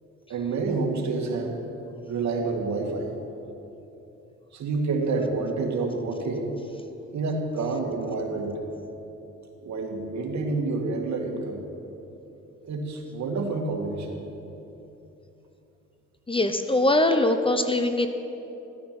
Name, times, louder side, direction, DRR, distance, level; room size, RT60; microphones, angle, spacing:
voice 1, 0.3-1.5 2.1-3.1 4.5-6.5 7.1-8.5 9.6-11.6 12.6-14.2, right 3 dB, 65° right, 1 dB, 2.0 m, -28 dB
voice 2, 16.3-18.1, left 1 dB, 15° left, 7 dB, 0.7 m, -22 dB
14.0 x 9.4 x 6.0 m, 3.0 s
cardioid pair, 90°, 30 cm